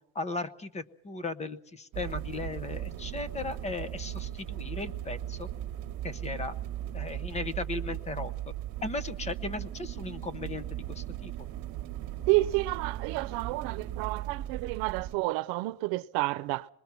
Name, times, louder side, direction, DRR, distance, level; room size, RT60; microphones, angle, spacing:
voice 1, 0.1-5.5 6.0-6.5 6.9-8.3 8.8-11.3, left 3 dB, 20° left, 0.8 m, -36 dB
sound 1, 1.9-15.1, right 12 dB, 55° right, 1.3 m, -37 dB
voice 2, 12.3-16.7, right 20 dB, 85° right, 0.8 m, -30 dB
25.5 x 20.5 x 5.8 m
cardioid pair, 170°, 36 cm